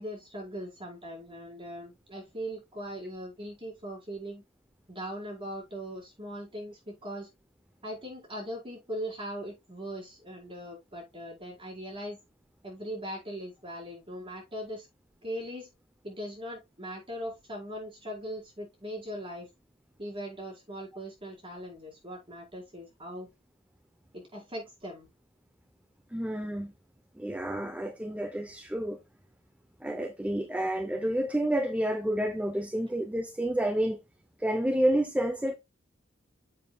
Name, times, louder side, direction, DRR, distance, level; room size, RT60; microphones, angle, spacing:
voice 1, 0.0-4.4 4.9-7.3 7.8-12.2 12.6-14.9 15.2-15.7 16.0-19.5 20.0-23.3 24.1-25.1, equal, 25° right, 4.9 m, -40 dB
voice 2, 26.1-26.7 27.2-29.0 29.8-34.0 34.4-35.5, right 1 dB, 5° right, 0.7 m, -29 dB
9.7 x 7.5 x 2.3 m
head